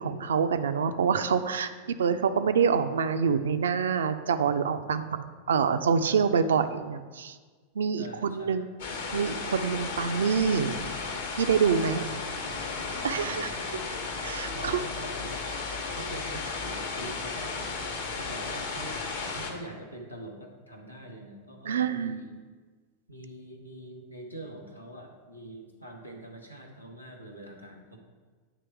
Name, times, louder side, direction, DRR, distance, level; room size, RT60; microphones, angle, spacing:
voice 1, 0.0-7.4 7.8-8.7 9.1-10.9 11.4-12.0 13.0-13.8 14.2-14.8 21.6-22.2, right 6 dB, 65° right, 10 dB, 0.3 m, -26 dB
voice 2, 6.0-6.3 8.0-8.8 11.8-13.7 14.5-17.7 18.1-19.0 19.3-22.3 23.1-28.0, right 1 dB, 90° left, 1 dB, 0.8 m, -44 dB
sound 1, 8.8-19.5, left 4 dB, 60° left, 0.9 m, -34 dB
9.3 x 3.1 x 4.5 m, 1.4 s
figure-of-eight pair, 90°, 0 cm